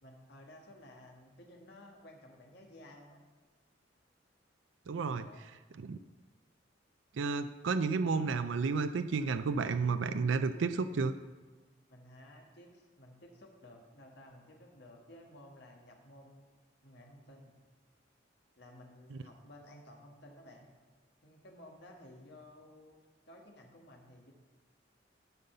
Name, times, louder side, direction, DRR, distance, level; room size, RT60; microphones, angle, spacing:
voice 1, 0.0-3.2 5.2-5.4 11.9-16.4 16.8-17.5 18.6-20.7 21.2-23.0 23.3-24.3, left 1 dB, 60° left, 1 dB, 1.7 m, -55 dB
voice 2, 4.9-5.2 5.8-6.0 7.1-11.1 19.1-19.2, right 4 dB, 85° right, 10 dB, 0.4 m, -31 dB
11.0 x 5.4 x 6.6 m, 1.3 s
head